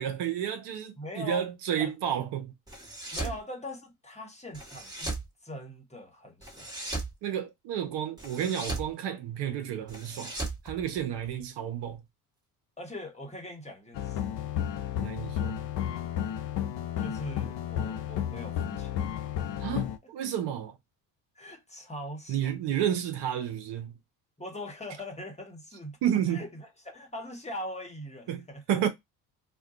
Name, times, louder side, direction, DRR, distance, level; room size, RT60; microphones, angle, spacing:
voice 1, 0.0-2.5 3.2-3.3 7.2-10.3 10.6-12.0 15.0-15.6 19.6-20.8 22.3-24.0 26.0-26.5 28.3-28.9, right 10 dB, 65° right, 0.9 m, -31 dB
voice 2, 1.0-1.5 1.8-1.9 3.1-5.1 5.4-6.7 12.8-14.4 17.0-19.0 21.4-22.5 24.4-26.0 26.3-28.9, left 1 dB, 15° left, 1.1 m, -41 dB
sound 1, 2.7-3.4 4.5-5.3 6.4-7.1 8.2-8.9 9.9-11.4, right 2 dB, 10° right, 1.3 m, -37 dB
sound 2, 13.9-20.0, left 10 dB, 65° left, 0.6 m, -32 dB
2.6 x 2.3 x 3.5 m
supercardioid pair, 85°, 44 cm